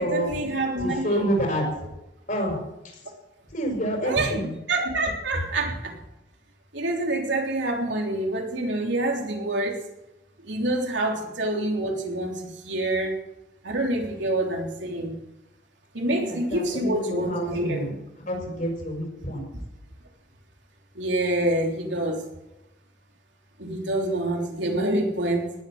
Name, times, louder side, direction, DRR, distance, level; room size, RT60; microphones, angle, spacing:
voice 1, 0.0-1.3 4.0-4.4 4.7-5.9 6.7-9.8 10.4-13.2 13.6-15.2 15.9-17.8 21.0-22.2 23.6-25.5, right 1 dB, 85° right, 1 dB, 3.5 m, -26 dB
voice 2, 0.8-1.8 2.3-2.6 2.8-3.0 3.5-4.6 11.0-11.2 13.9-14.1 16.0-18.0 18.3-19.5, equal, 45° left, 1 dB, 6.1 m, -28 dB
19.0 x 8.6 x 7.9 m, 0.93 s
head